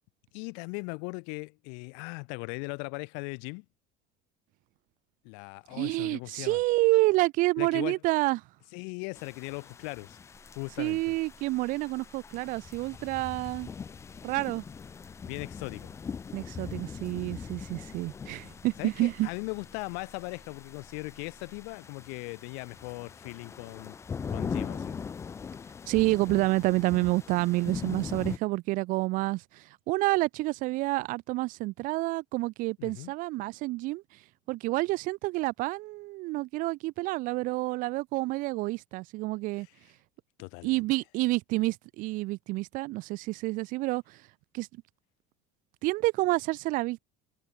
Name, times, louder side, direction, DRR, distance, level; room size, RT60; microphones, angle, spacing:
voice 1, 0.3-3.7 5.2-6.6 7.6-8.0 8.7-10.2 10.5-11.0 15.2-15.9 18.8-24.0 24.3-25.0 32.8-33.1 39.6-39.7 40.4-40.8, left 40 dB or more, 75° left, 0.6 m, -39 dB
voice 2, 5.7-8.4 10.8-13.7 14.2-14.6 16.3-19.3 25.9-34.0 34.5-39.7 40.6-44.2 44.5-44.7 45.8-47.0, right 21 dB, 45° right, 0.4 m, -28 dB
sound 1, 9.1-28.4, left 6 dB, 15° left, 0.5 m, -41 dB
sound 2, 10.3-21.8, right 1 dB, 5° right, 7.6 m, -59 dB
cardioid pair, 165°, 19 cm